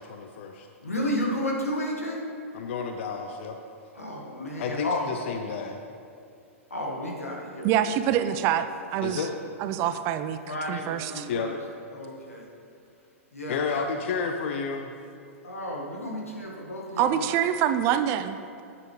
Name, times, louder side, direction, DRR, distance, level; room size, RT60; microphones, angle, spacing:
voice 1, 0.0-0.7 2.5-3.6 4.6-5.8 9.0-9.4 11.3-11.5 13.5-14.9, left 5 dB, 55° left, 5 dB, 0.6 m, -31 dB
voice 2, 0.8-2.2 3.9-5.2 6.7-8.1 10.5-11.6 11.9-12.5 13.3-13.8 15.4-17.4, left 1 dB, 85° left, -1 dB, 1.6 m, -32 dB
voice 3, 7.6-9.3 9.6-10.4 10.7-11.3 17.0-18.6, right 10 dB, 40° right, 11 dB, 0.4 m, -26 dB
10.5 x 8.6 x 3.2 m, 2.5 s
figure-of-eight pair, 105°, 7 cm